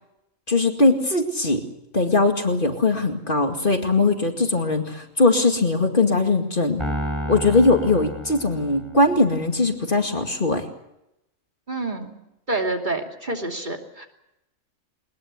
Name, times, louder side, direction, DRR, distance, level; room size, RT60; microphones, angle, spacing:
voice 1, 0.5-1.6 1.9-6.8 7.3-10.6, left 3 dB, 40° left, 4 dB, 2.4 m, -20 dB
Piano, 6.8-9.2, equal, 20° right, 4.7 m, -31 dB
voice 2, 11.7-12.2 12.5-14.1, right 2 dB, 40° right, 3 dB, 2.9 m, -28 dB
21.5 x 21.0 x 8.2 m, 0.87 s
omnidirectional pair, 1.3 m